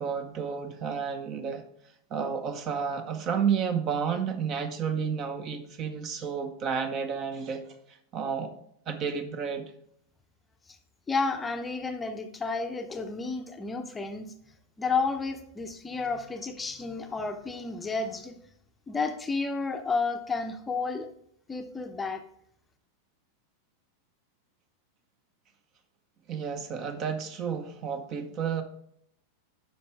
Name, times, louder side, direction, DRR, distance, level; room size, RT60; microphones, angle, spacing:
voice 1, 0.0-1.6 2.1-7.8 8.1-8.5 8.9-9.7 26.3-28.6, right 6 dB, 35° right, 9 dB, 0.8 m, -31 dB
voice 2, 11.1-14.3 14.8-18.4 18.9-21.1 21.5-22.2, left 4 dB, 15° left, 6 dB, 0.7 m, -31 dB
9.5 x 6.0 x 3.4 m, 0.70 s
figure-of-eight pair, 90°, 0 cm